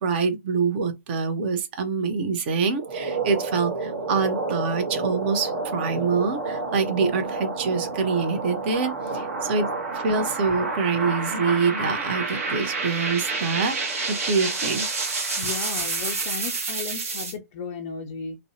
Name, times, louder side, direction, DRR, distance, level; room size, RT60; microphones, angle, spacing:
voice 1, 0.0-9.7 9.9-14.9, right 5 dB, 40° right, 0.6 m, -25 dB
sound 1, 2.7-17.3, right 3 dB, 55° right, 0.9 m, -29 dB
voice 2, 15.4-18.4, left 5 dB, 30° left, 0.4 m, -35 dB
2.5 x 2.0 x 2.6 m
figure-of-eight pair, 115°, 9 cm